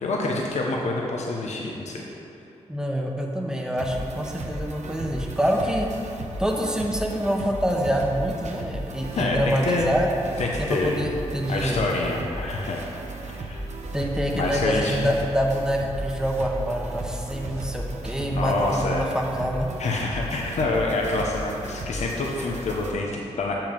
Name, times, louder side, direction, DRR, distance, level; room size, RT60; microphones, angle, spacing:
voice 1, 0.0-2.0 9.1-9.9 10.4-11.1 11.5-12.8 13.4-13.6 14.3-15.1 18.3-19.0 19.8-23.5, left 2 dB, 70° left, -1 dB, 0.9 m, -26 dB
voice 2, 2.7-5.9 6.4-10.1 10.6-11.9 13.9-19.7, equal, 5° right, 0 dB, 1.1 m, -26 dB
sound 1, 3.8-22.9, right 1 dB, 75° right, 0.9 m, -35 dB
6.9 x 5.9 x 5.2 m, 2.7 s
cardioid pair, 60°, 12 cm